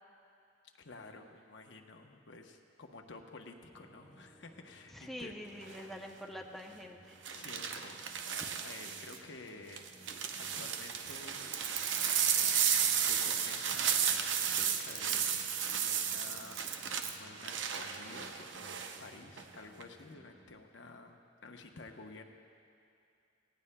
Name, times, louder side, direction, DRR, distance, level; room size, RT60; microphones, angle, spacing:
voice 1, 0.8-5.3 5.7-5.9 7.3-8.3 8.6-9.8 10.6-15.5 15.8-22.2, left 3 dB, 70° left, 3 dB, 0.9 m, -52 dB
sound 1, 3.6-20.4, equal, 35° right, 2.6 m, -60 dB
voice 2, 4.9-7.2 8.4-8.5, equal, ahead, 1 dB, 0.6 m, -46 dB
sound 2, 5.6-5.9 7.3-9.2 9.7-19.0 19.4-19.8, right 8 dB, 75° right, 0.7 m, -33 dB
18.0 x 17.0 x 2.2 m, 2.6 s
head